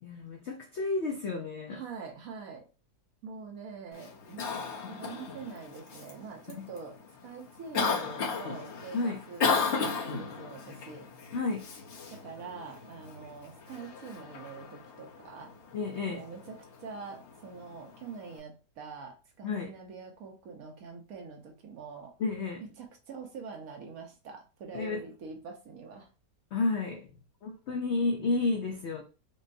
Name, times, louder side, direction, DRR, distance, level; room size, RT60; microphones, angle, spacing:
voice 1, 0.0-1.8 6.5-6.6 8.9-9.2 11.3-11.7 15.7-16.3 19.4-19.7 22.2-22.6 24.7-25.0 26.5-27.1 27.4-29.0, left 3 dB, 70° left, 0.6 m, -31 dB
voice 2, 1.7-2.7 3.2-7.0 7.2-11.1 12.2-15.5 16.1-16.6 16.8-22.1 22.6-26.1, right 5 dB, 65° right, 1.2 m, -44 dB
Cough, 3.9-18.4, left 5 dB, 50° left, 0.9 m, -36 dB
5.3 x 2.1 x 2.6 m
omnidirectional pair, 1.8 m